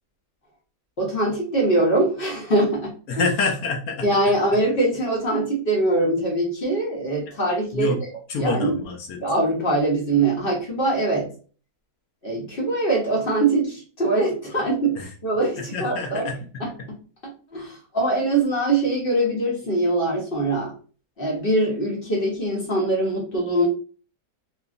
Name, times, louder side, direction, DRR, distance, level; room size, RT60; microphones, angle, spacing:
voice 1, 1.0-3.3 4.0-8.0 8.4-8.8 9.2-11.3 12.2-16.3 16.6-16.7 17.5-20.7 21.2-23.7, right 2 dB, 45° left, -2 dB, 0.8 m, -23 dB
voice 2, 3.1-4.0 7.7-8.0 8.3-9.2 14.9-15.1 15.5-16.6, left 3 dB, 70° left, 2 dB, 0.9 m, -27 dB
2.9 x 2.4 x 2.4 m, 0.39 s
omnidirectional pair, 1.8 m